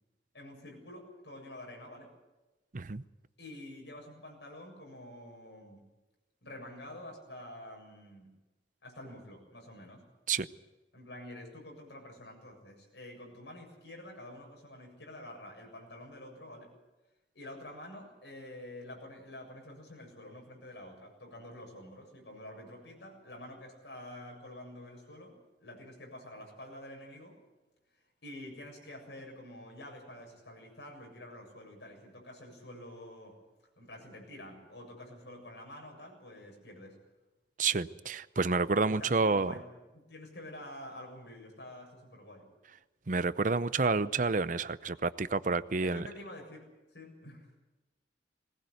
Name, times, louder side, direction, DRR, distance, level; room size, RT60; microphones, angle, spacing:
voice 1, 0.3-2.1 3.4-5.8 6.4-8.3 8.8-10.0 10.9-16.7 17.3-27.4 28.2-33.4 33.8-37.0 38.9-39.7 39.9-42.5 45.8-47.5, left 1 dB, 85° left, 2 dB, 7.4 m, -48 dB
voice 2, 37.6-39.5 43.1-46.0, right 4 dB, 45° right, 14 dB, 0.7 m, -29 dB
21.5 x 19.0 x 8.1 m, 1.1 s
head